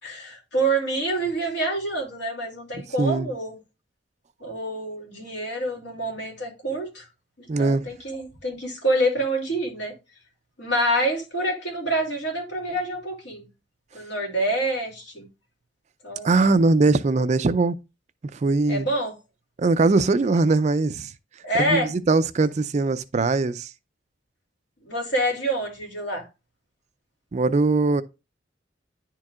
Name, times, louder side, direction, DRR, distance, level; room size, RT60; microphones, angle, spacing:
voice 1, 0.0-3.6 4.4-7.1 7.4-9.9 10.6-13.4 13.9-15.3 16.0-16.3 18.7-19.1 21.4-21.9 24.8-26.3, right 1 dB, 70° left, 2.6 m, -27 dB
voice 2, 3.0-3.3 7.5-7.8 16.2-17.8 18.3-18.9 19.6-21.1 21.6-23.7 27.3-28.0, right 3 dB, 40° right, 0.4 m, -21 dB
10.5 x 4.6 x 2.4 m
head